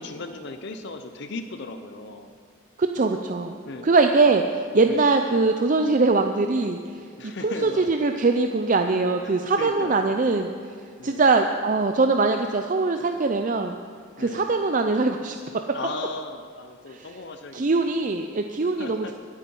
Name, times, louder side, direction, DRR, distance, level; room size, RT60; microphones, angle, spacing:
voice 1, 0.0-2.3 3.7-3.9 4.8-5.1 7.2-7.9 9.2-10.0 11.0-11.3 14.2-14.5 15.7-17.9 18.7-19.1, left 3 dB, 55° left, 7 dB, 0.7 m, -37 dB
voice 2, 2.8-3.6 3.8-6.8 7.4-10.5 11.0-13.7 14.2-15.4 16.9-17.1 17.5-19.1, right 3 dB, 40° right, 5 dB, 0.5 m, -22 dB
22.0 x 8.5 x 5.5 m, 2.1 s
head